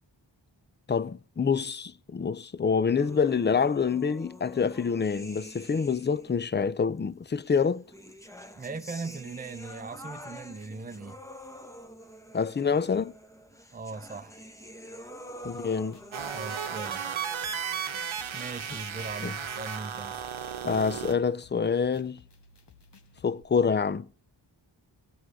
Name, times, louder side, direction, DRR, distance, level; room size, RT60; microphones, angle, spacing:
voice 1, 0.9-7.8 12.3-13.1 15.4-16.0 19.2-19.3 20.6-22.2 23.2-24.1, left 6 dB, 25° left, 0.4 m, -26 dB
sound 1, 3.0-6.4 7.4-19.0, equal, 5° left, 1.1 m, -47 dB
voice 2, 8.6-11.2 13.7-14.4 16.3-17.3 18.3-20.2, right 3 dB, 20° right, 0.7 m, -39 dB
sound 2, 15.4-23.4, left 3 dB, 60° left, 1.2 m, -58 dB
sound 3, 16.1-21.1, right 7 dB, 80° right, 1.0 m, -34 dB
16.0 x 6.3 x 4.8 m
cardioid pair, 50°, 47 cm